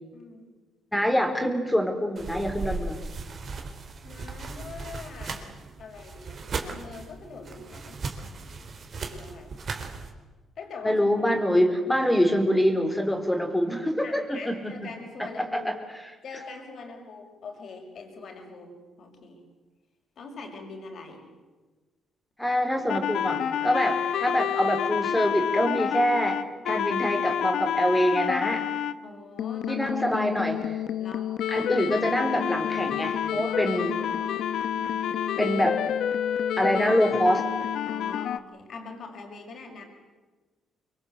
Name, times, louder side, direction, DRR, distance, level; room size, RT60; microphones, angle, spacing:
voice 1, 0.1-0.5 4.0-5.5 5.8-8.0 9.0-9.5 10.6-11.3 14.0-15.8 16.2-18.7 19.0-19.4 20.2-21.3 29.0-30.4 31.0-31.3 33.4-34.5 34.8-35.1 37.8-39.8, left 4 dB, 60° left, 3 dB, 6.0 m, -43 dB
voice 2, 0.9-3.0 10.8-14.7 15.4-15.7 22.4-26.4 26.7-28.6 29.7-30.6 31.5-34.0 35.4-35.8 36.6-37.4, equal, 5° left, 4 dB, 4.4 m, -25 dB
sound 1, 2.2-10.1, right 4 dB, 50° right, 3.7 m, -37 dB
sound 2, 22.9-28.9 29.4-38.4, left 9 dB, 75° left, 1.0 m, -29 dB
25.5 x 23.5 x 8.1 m, 1.2 s
cardioid pair, 90°, 0 cm